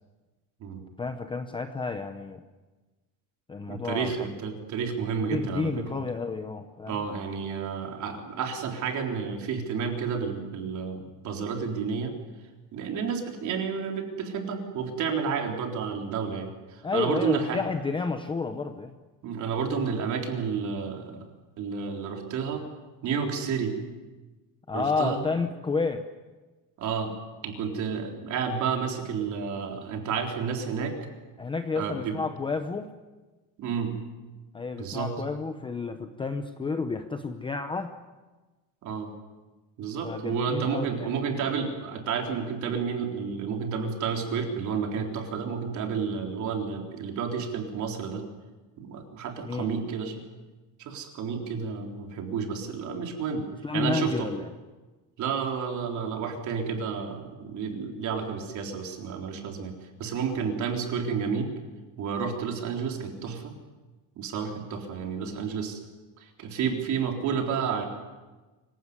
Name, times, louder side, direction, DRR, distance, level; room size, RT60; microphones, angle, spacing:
voice 1, 1.0-2.4 3.5-4.4 5.2-7.0 16.8-18.9 24.7-26.1 31.4-32.9 34.5-38.0 40.0-41.1 49.4-49.8 53.6-54.5, left 4 dB, 10° left, 7 dB, 0.7 m, -31 dB
voice 2, 3.7-6.0 6.9-12.1 12.7-17.6 19.2-21.3 21.6-22.6 23.0-23.8 24.7-25.2 26.8-27.1 27.4-31.0 31.8-32.2 33.6-34.0 34.8-35.1 38.8-39.1 39.8-48.2 48.8-50.2 50.8-53.5 53.7-54.3 55.2-59.7 60.0-61.5 62.0-63.5 64.2-65.8 66.2-67.8, right 6 dB, 40° right, 2 dB, 3.9 m, -31 dB
25.0 x 16.5 x 9.7 m, 1.2 s
cardioid pair, 175°, 43 cm